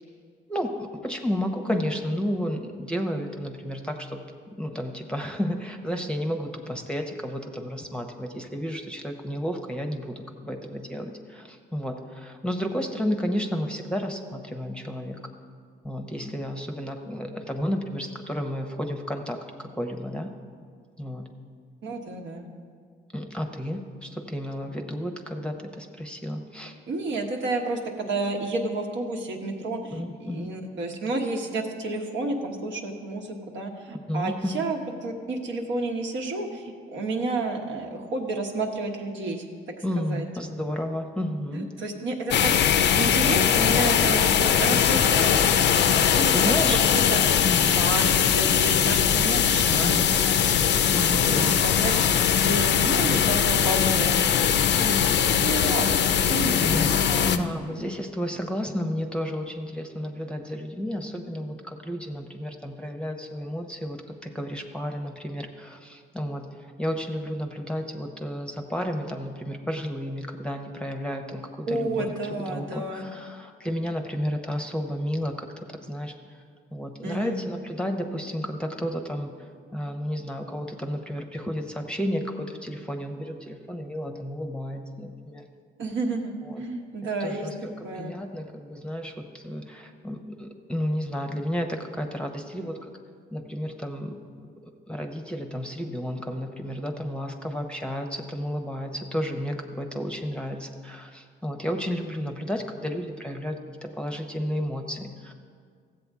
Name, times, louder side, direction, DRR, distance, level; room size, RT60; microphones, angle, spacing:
voice 1, 0.5-15.2 15.8-20.3 21.0-21.3 23.1-26.7 29.9-30.5 34.1-34.7 39.8-41.7 44.7-44.8 45.8-46.8 47.4-47.8 49.8-50.1 50.9-51.6 56.6-56.9 57.2-72.1 72.5-76.2 76.7-85.4 86.4-86.6 87.2-92.9 93.3-94.2 94.6-105.3, equal, 5° left, 4 dB, 0.8 m, -32 dB
voice 2, 21.8-22.5 26.9-40.3 41.5-42.6 42.9-45.4 46.1-46.5 46.9-47.2 47.7-50.4 51.1-57.3 71.7-73.0 77.0-77.4 85.8-88.2, right 2 dB, 70° right, 1 dB, 1.3 m, -31 dB
sound 1, 42.3-57.4, left 8 dB, 60° left, 0.5 m, -21 dB
14.5 x 7.9 x 3.6 m, 2.1 s
cardioid pair, 90°, 20 cm